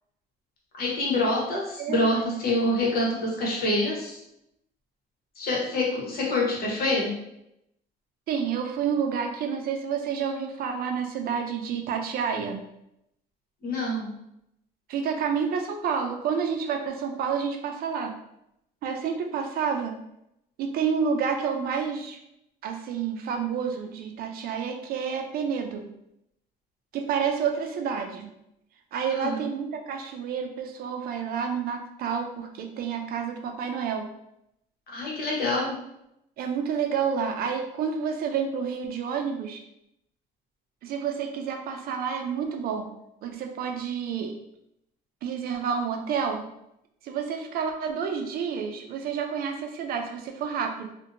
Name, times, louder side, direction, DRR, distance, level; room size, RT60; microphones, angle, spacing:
voice 1, 0.8-4.2 5.4-7.1 13.6-14.1 29.1-29.4 34.9-35.8, left 1 dB, 60° left, -3 dB, 1.0 m, -26 dB
voice 2, 1.8-2.4 8.3-12.6 14.9-18.2 18.8-19.9 20.6-22.2 22.6-25.8 26.9-28.3 28.9-34.1 36.4-39.6 40.8-42.9 43.2-44.3 45.2-46.4 47.0-50.9, right 6 dB, 65° right, 4 dB, 0.4 m, -29 dB
2.6 x 2.1 x 2.5 m, 0.81 s
cardioid pair, 110°, 17 cm